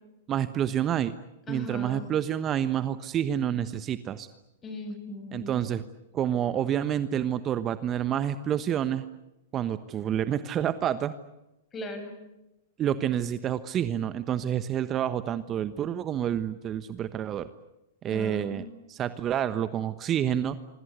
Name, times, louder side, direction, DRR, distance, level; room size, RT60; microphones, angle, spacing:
voice 1, 0.3-1.1 1.5-4.3 5.3-5.8 6.1-9.0 9.5-11.1 12.8-17.5 18.0-18.6 18.9-20.6, right 10 dB, 30° right, 12 dB, 1.2 m, -28 dB
voice 2, 1.5-2.0 4.6-5.6 11.7-12.2 18.1-18.7, left 1 dB, 20° left, 8 dB, 7.0 m, -38 dB
26.5 x 25.0 x 8.2 m, 0.94 s
hypercardioid pair, 115°, 0 cm